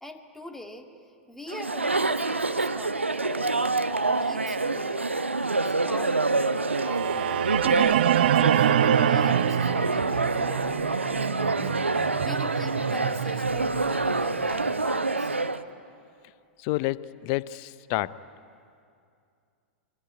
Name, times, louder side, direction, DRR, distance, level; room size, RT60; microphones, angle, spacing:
voice 1, 0.0-0.9 1.3-15.4, left 1 dB, 5° left, 4 dB, 2.2 m, -43 dB
Chatter, 1.5-15.6, right 3 dB, 80° right, 0.9 m, -27 dB
sound 1, 6.6-14.7, right 10 dB, 55° right, 0.8 m, -26 dB
voice 2, 16.6-18.2, left 17 dB, 40° left, 18 dB, 0.7 m, -29 dB
25.0 x 24.0 x 9.5 m, 2.4 s
figure-of-eight pair, 95°, 6 cm